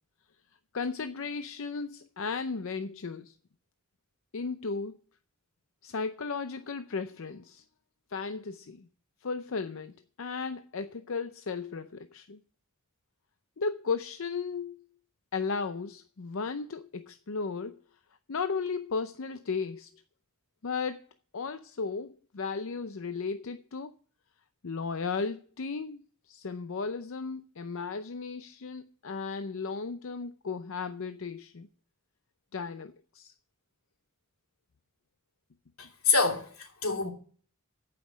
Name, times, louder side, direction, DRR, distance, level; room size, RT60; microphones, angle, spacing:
voice 1, 0.7-3.3 4.3-5.0 5.8-7.6 8.1-8.9 9.2-12.4 13.6-14.8 15.3-17.8 18.3-19.9 20.6-21.0 21.3-23.9 24.6-31.7 32.5-33.3, left 4 dB, 65° left, 0.6 m, -35 dB
voice 2, 35.8-37.1, left 4 dB, 90° left, 2.8 m, -27 dB
14.5 x 5.9 x 6.2 m
head